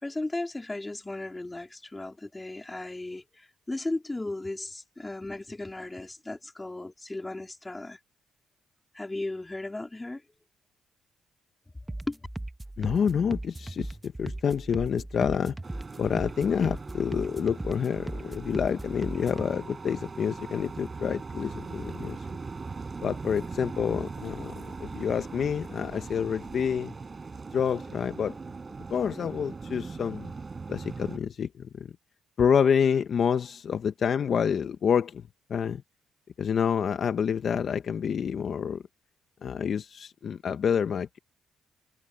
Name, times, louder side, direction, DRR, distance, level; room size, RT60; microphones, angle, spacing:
voice 1, 0.0-8.0 8.9-10.2 12.1-12.2, left 2 dB, 15° left, 3.4 m, -36 dB
sound 1, 11.9-19.5, right 2 dB, 10° right, 1.4 m, -38 dB
voice 2, 12.8-15.6 16.0-22.3 23.0-26.9 27.5-28.4 28.9-30.3 30.7-31.9 32.4-35.2 35.5-35.8 36.4-38.8 39.4-41.2, left 7 dB, 55° left, 0.9 m, -28 dB
sound 2, 15.6-31.2, right 4 dB, 30° right, 7.4 m, -40 dB
cardioid pair, 90°, 0 cm